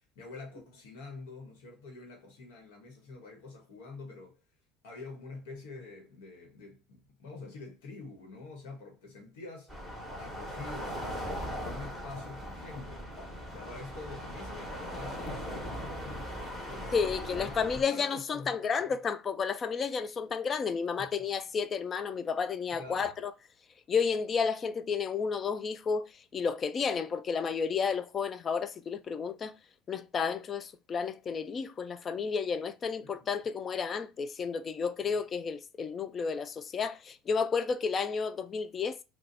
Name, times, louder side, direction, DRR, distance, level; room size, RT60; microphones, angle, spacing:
voice 1, 0.1-4.3 4.8-9.7 10.2-13.1 13.5-17.0 17.4-18.9 21.0-21.3 22.7-23.1 33.0-33.4 35.0-35.1, left 3 dB, 90° left, 1.2 m, -47 dB
sound 1, 9.7-17.8, equal, 15° left, 1.3 m, -39 dB
voice 2, 16.9-23.3 23.9-29.5 29.9-39.0, left 5 dB, 35° left, 0.3 m, -32 dB
2.7 x 2.3 x 3.9 m
supercardioid pair, 110°, 0 cm